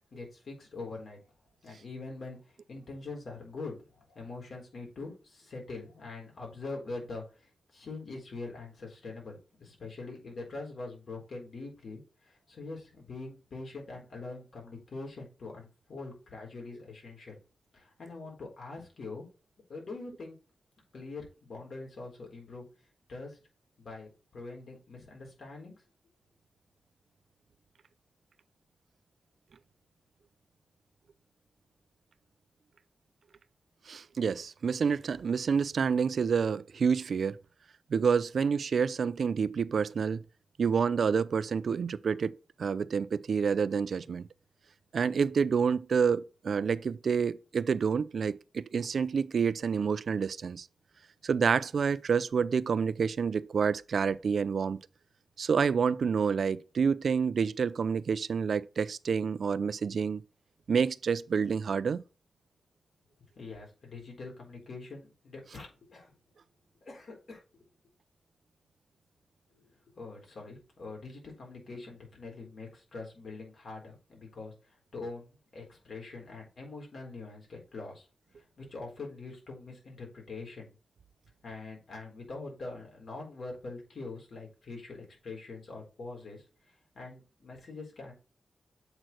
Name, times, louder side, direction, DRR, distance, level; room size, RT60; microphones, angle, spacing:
voice 1, 0.1-1.2 1.6-17.4 17.7-19.3 19.7-20.4 20.9-22.6 23.1-23.4 23.8-25.7 63.3-66.2 66.8-67.7 69.5-78.1 78.3-80.7 81.4-86.4 86.9-88.1, left 3 dB, 65° left, 4.1 m, -44 dB
voice 2, 33.9-37.4 37.9-40.2 40.6-44.3 44.9-50.7 51.2-54.8 55.4-60.2 60.7-62.0, right 6 dB, 70° right, 0.4 m, -28 dB
7.7 x 4.5 x 4.3 m
cardioid pair, 65°, 0 cm